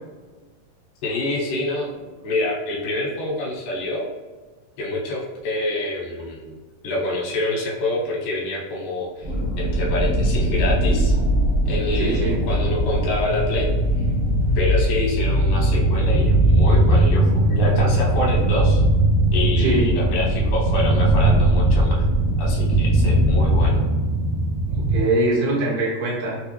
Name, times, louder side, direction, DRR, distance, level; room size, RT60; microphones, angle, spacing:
voice 1, 1.0-4.1 4.8-6.6 6.8-9.3 9.6-11.1 11.7-13.7 14.6-18.8 19.3-22.0 22.4-23.8, left 2 dB, 90° left, -4 dB, 2.7 m, -26 dB
sound 1, 9.2-23.7, equal, 40° right, 0.8 m, -22 dB
voice 2, 12.0-12.4 19.6-19.9 24.7-26.4, right 2 dB, 65° right, -6 dB, 2.6 m, -23 dB
sound 2, 15.5-25.0, right 2 dB, 85° right, 2.2 m, -20 dB
6.2 x 2.2 x 3.1 m, 1.3 s
omnidirectional pair, 3.7 m